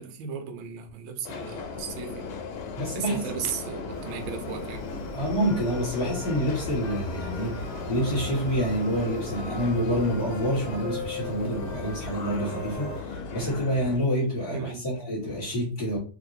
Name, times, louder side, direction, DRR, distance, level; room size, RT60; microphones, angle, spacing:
voice 1, 0.0-2.3 2.9-4.8 14.5-14.9, right 7 dB, 75° right, 1.3 m, -35 dB
Subway metro underground, 1.2-14.0, left 5 dB, 80° left, 1.4 m, -37 dB
voice 2, 2.8-3.2 5.1-16.0, equal, 30° left, 1.4 m, -28 dB
sound 1, 3.9-13.0, right 1 dB, 55° left, 1.2 m, -40 dB
3.1 x 2.8 x 2.6 m
omnidirectional pair, 2.3 m